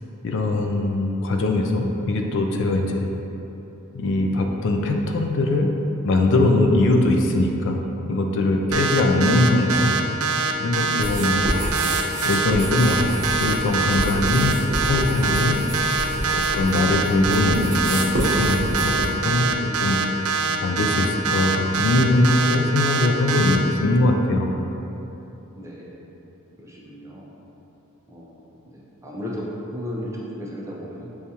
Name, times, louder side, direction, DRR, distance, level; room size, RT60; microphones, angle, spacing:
voice 1, 0.2-3.0 3.9-5.7 6.0-7.8 8.0-10.0 10.6-11.4 12.2-15.6 16.3-19.0 19.2-24.5, left 2 dB, 60° left, 3 dB, 0.4 m, -21 dB
sound 1, 8.7-23.6, right 4 dB, 75° right, 0.3 m, -23 dB
sound 2, 11.0-19.1, equal, 40° right, 0.9 m, -28 dB
voice 2, 25.5-26.0 26.6-27.3 28.1-28.3 29.0-31.1, equal, 15° right, -5 dB, 0.5 m, -34 dB
6.6 x 2.4 x 2.8 m, 2.9 s
head